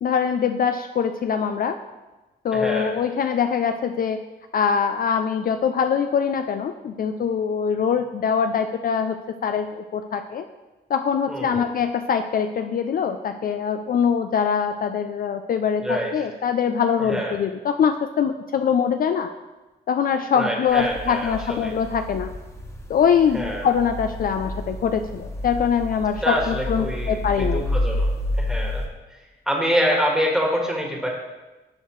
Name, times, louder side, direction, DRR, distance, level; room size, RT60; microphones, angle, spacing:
voice 1, 0.0-1.8 2.4-4.2 4.5-9.2 9.4-10.4 10.9-19.3 19.9-22.3 22.9-27.7, left 7 dB, 55° left, 8 dB, 0.4 m, -23 dB
voice 2, 2.5-3.0 11.3-11.7 15.8-16.3 17.0-17.4 20.3-21.7 23.3-23.6 26.2-28.1 28.4-28.8 29.5-31.1, equal, 5° right, -1 dB, 1.5 m, -26 dB
sound 1, 20.7-28.9, left 1 dB, 15° left, 0.9 m, -29 dB
11.5 x 4.6 x 3.1 m, 1.1 s
cardioid pair, 105°, 18 cm